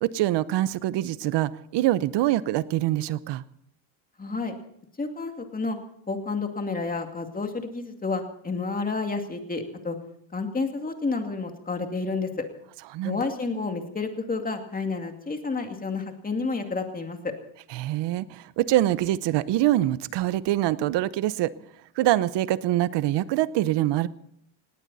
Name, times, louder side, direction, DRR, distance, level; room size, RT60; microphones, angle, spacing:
voice 1, 0.0-3.4 12.9-13.2 17.7-21.5 22.0-24.1, right 14 dB, 60° right, 17 dB, 0.9 m, -24 dB
voice 2, 4.2-4.5 5.0-5.8 6.1-10.0 10.3-12.3 13.0-17.3, left 3 dB, 15° left, 5 dB, 2.4 m, -30 dB
19.0 x 18.0 x 4.1 m, 0.70 s
cardioid pair, 120°, 48 cm